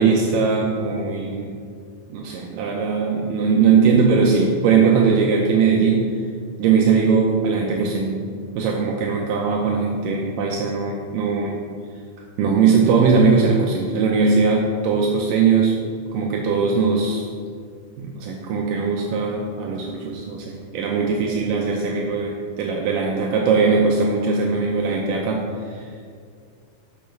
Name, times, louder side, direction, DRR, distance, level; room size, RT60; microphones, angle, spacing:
voice 1, 0.0-1.5 2.1-6.1 6.6-8.2 8.6-11.6 12.4-15.8 16.1-17.3 18.0-25.8, right 5 dB, 80° right, 0 dB, 2.1 m, -20 dB
7.0 x 6.2 x 6.0 m, 2.2 s
omnidirectional pair, 4.3 m